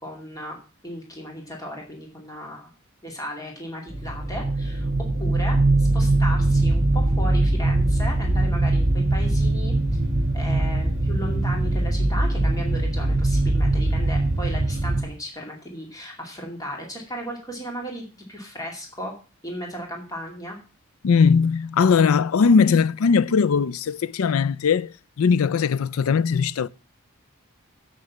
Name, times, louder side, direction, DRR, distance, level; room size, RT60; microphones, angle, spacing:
voice 1, 0.0-0.6 0.8-2.7 3.0-4.9 5.2-10.0 10.3-19.1 19.4-20.6, equal, 15° left, 2.3 m, -35 dB
sound 1, 3.9-15.0, right 2 dB, 35° right, 1.5 m, -22 dB
voice 2, 21.0-24.9 25.2-26.7, left 5 dB, 85° left, 0.4 m, -19 dB
7.8 x 6.5 x 7.2 m
head